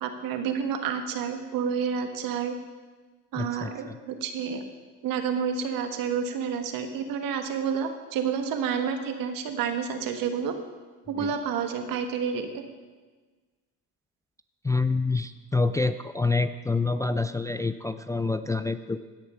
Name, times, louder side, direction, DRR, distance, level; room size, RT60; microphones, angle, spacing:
voice 1, 0.0-2.5 3.3-4.6 5.0-10.5 11.1-12.6, right 7 dB, 70° right, 6 dB, 1.5 m, -29 dB
voice 2, 3.4-4.0 11.2-11.3 14.6-19.0, left 3 dB, 10° left, 10 dB, 0.3 m, -27 dB
16.0 x 6.8 x 5.6 m, 1.4 s
supercardioid pair, 90°, 35 cm